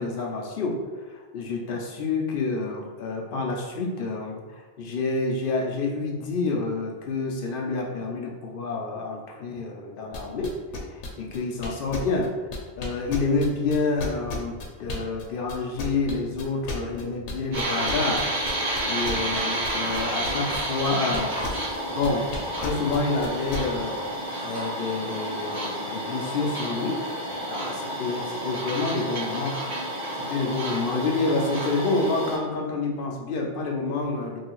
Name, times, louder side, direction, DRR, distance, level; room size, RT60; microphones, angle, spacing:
voice 1, 0.0-10.5 10.9-12.3 12.8-18.3 18.8-21.4 21.9-22.3 22.6-24.1 24.4-29.6 30.1-34.4, left 3 dB, 60° left, 0 dB, 0.7 m, -28 dB
sound 1, 10.1-15.2 15.5-21.8 22.0-23.6, left 3 dB, 90° left, 0.9 m, -34 dB
sound 2, 17.5-32.4, right 1 dB, 80° right, 1.3 m, -30 dB
3.1 x 2.6 x 3.0 m, 1.3 s
omnidirectional pair, 1.1 m